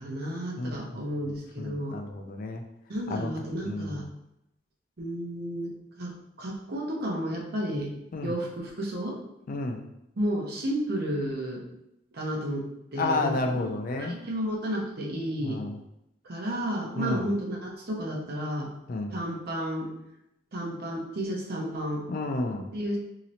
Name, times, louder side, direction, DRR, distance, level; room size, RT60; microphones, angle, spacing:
voice 1, 0.0-2.0 2.9-4.1 5.0-5.7 6.0-7.9 8.2-9.2 10.2-11.6 12.1-13.7 14.0-15.6 16.2-18.7 19.1-19.9 20.5-22.1 22.7-23.0, equal, 55° right, -1 dB, 0.7 m, -32 dB
voice 2, 0.6-2.6 3.1-3.3 3.6-4.0 8.1-8.3 9.5-9.8 13.0-14.2 15.4-15.8 17.0-17.3 18.9-19.1 22.1-22.7, left 2 dB, 45° left, 4 dB, 0.3 m, -31 dB
3.0 x 2.8 x 2.7 m, 0.82 s
head